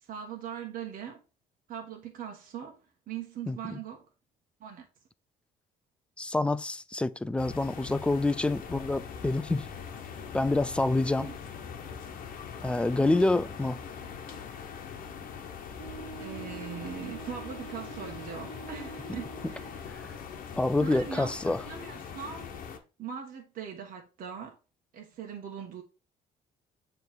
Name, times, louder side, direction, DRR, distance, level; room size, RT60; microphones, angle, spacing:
voice 1, 0.0-1.2 1.7-4.0 4.6-4.9 11.2-11.4 16.2-19.8 20.8-22.5 23.0-24.6 24.9-25.8, right 7 dB, 55° right, 1.3 m, -41 dB
voice 2, 3.5-3.8 6.2-9.7 10.3-11.3 12.6-13.8 20.5-21.6, left 2 dB, 5° left, 0.3 m, -27 dB
sound 1, 7.4-22.8, left 6 dB, 55° left, 1.1 m, -42 dB
Wind instrument woodwind instrument, 15.8-19.9, right 5 dB, 85° right, 0.7 m, -46 dB
7.0 x 3.2 x 4.4 m
cardioid pair, 110°, 17 cm